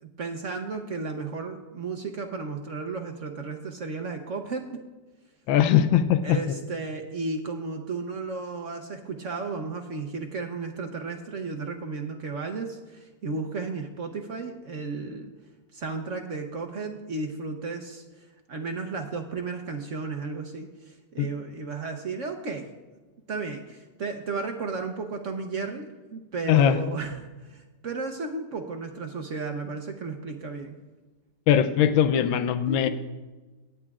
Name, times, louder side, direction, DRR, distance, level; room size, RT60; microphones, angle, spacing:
voice 1, 0.0-4.8 6.2-15.3 15.7-18.0 18.5-22.7 23.3-25.9 26.1-30.8 32.7-32.9, right 4 dB, 55° right, 4 dB, 0.9 m, -34 dB
voice 2, 5.5-6.4 21.2-21.3 26.5-26.8 31.5-32.9, left 9 dB, 90° left, 10 dB, 1.4 m, -20 dB
17.5 x 9.8 x 2.4 m, 1.2 s
omnidirectional pair, 2.1 m